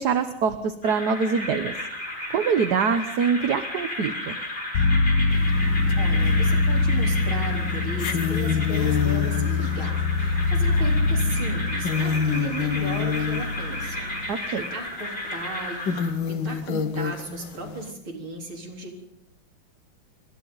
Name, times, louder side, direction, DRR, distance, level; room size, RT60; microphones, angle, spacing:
voice 1, 0.0-1.7 2.3-4.4 14.3-14.6, right 6 dB, 55° right, 9 dB, 1.4 m, -24 dB
sound 1, 0.8-16.1, left 1 dB, 25° left, 5.0 m, -34 dB
sound 2, 4.7-14.3, left 3 dB, 85° left, 2.1 m, -24 dB
sound 3, 5.3-5.4 5.9-6.6 7.0-7.1 7.9-14.2 14.5-14.6 15.2-15.3 15.8-17.9, left 7 dB, 65° left, 2.0 m, -28 dB
voice 2, 5.5-16.0 16.3-19.0, right 2 dB, 75° right, 0 dB, 4.8 m, -36 dB
28.0 x 24.0 x 4.0 m, 0.81 s
omnidirectional pair, 2.3 m